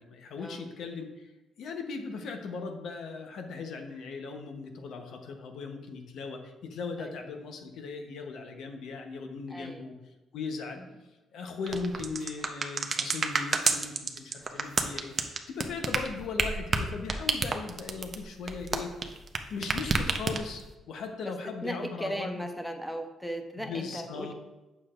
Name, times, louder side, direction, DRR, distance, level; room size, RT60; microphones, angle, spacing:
voice 1, 0.0-1.3 1.6-9.9 10.3-10.8 11.3-15.1 15.5-19.1 19.5-22.4 23.6-24.3, left 4 dB, 75° left, 4 dB, 0.9 m, -38 dB
voice 2, 9.5-9.8 10.8-10.9 21.2-21.3 21.6-24.3, equal, ahead, 5 dB, 0.8 m, -37 dB
sound 1, 11.7-19.4 19.6-20.7, right 4 dB, 40° right, 0.6 m, -29 dB
7.7 x 6.2 x 2.5 m, 1.1 s
cardioid pair, 90°, 0 cm